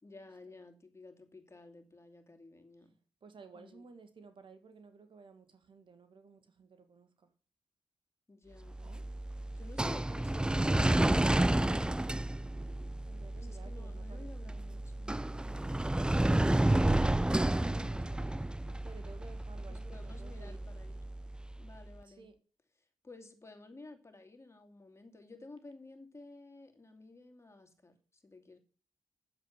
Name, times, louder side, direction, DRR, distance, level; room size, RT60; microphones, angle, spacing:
voice 1, 0.0-2.9 3.5-3.8 8.3-8.8 9.6-11.5 11.9-12.3 13.4-15.2 17.8-18.1 19.7-21.0 21.6-22.3 23.0-28.6, left 2 dB, 30° left, 2.7 m, -54 dB
voice 2, 3.2-7.3 8.8-9.0 13.1-14.9 16.2-18.3 18.6-20.6 22.0-22.4, right 4 dB, 60° right, 1.9 m, -56 dB
sound 1, 8.7-21.8, right 1 dB, 10° right, 0.5 m, -31 dB
8.9 x 7.7 x 7.3 m
cardioid pair, 55°, 9 cm